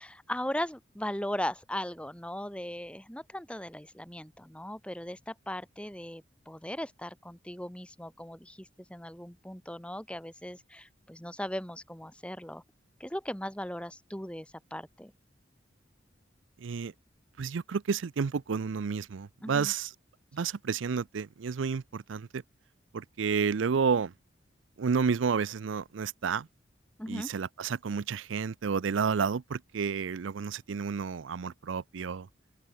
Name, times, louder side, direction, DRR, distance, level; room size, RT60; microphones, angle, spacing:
voice 1, 0.0-12.6 13.0-15.1 19.4-19.7 27.0-27.3, left 1 dB, 5° left, 2.7 m, -38 dB
voice 2, 16.6-16.9 17.4-19.9 20.3-22.4 22.9-24.1 24.8-26.5 27.1-32.3, right 6 dB, 85° right, 0.5 m, -30 dB
open air
head